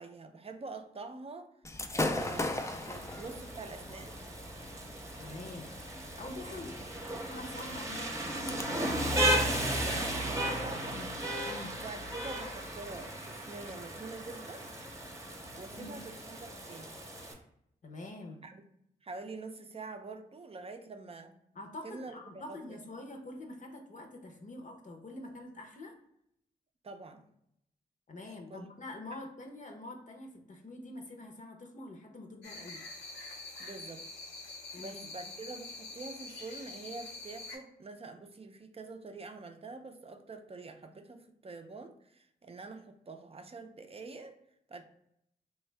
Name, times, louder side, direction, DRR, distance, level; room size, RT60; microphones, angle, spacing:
voice 1, 0.0-1.5 1.9-4.1 6.4-6.9 9.0-11.0 11.7-14.6 15.5-17.0 18.4-18.6 19.0-21.4 21.8-22.8 26.8-27.3 28.2-28.7 29.1-29.2 33.6-34.1 34.8-44.4 44.7-44.8, right 3 dB, 35° right, 6 dB, 0.5 m, -46 dB
Gunshot gunfire / Fireworks, 1.6-8.6, left 2 dB, 15° left, 0.4 m, -39 dB
Rain, 2.2-17.3, right 1 dB, 20° right, 0.9 m, -36 dB
voice 2, 5.2-5.8 6.2-6.8 7.3-8.3 10.9-11.1 11.5-11.7 15.8-16.0 17.8-18.4 21.5-25.9 28.1-32.8 34.7-35.0, left 2 dB, 50° left, 2 dB, 0.7 m, -45 dB
sound 1, 32.4-37.6, left 2 dB, 85° left, 0.7 m, -45 dB
3.2 x 2.2 x 3.2 m, 0.75 s
supercardioid pair, 45°, 17 cm